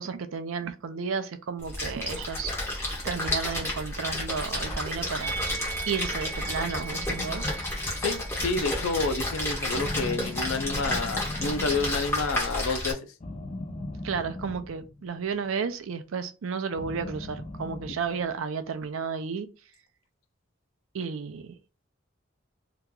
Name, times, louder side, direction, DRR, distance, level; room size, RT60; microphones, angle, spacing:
voice 1, 0.0-2.5 3.0-7.5 14.0-19.5 20.9-21.5, right 5 dB, 75° right, 0.4 m, -32 dB
Splash splatter, 1.6-12.9, left 1 dB, 10° left, 1.0 m, -31 dB
Musical instrument, 5.2-10.4 10.7-10.9, right 5 dB, 30° right, 0.8 m, -40 dB
sound 1, 6.6-9.0 9.8-12.3 13.2-15.2 16.7-18.4, left 2 dB, 30° left, 0.5 m, -39 dB
voice 2, 8.0-13.1, left 3 dB, 80° left, 0.5 m, -29 dB
2.9 x 2.3 x 3.6 m
head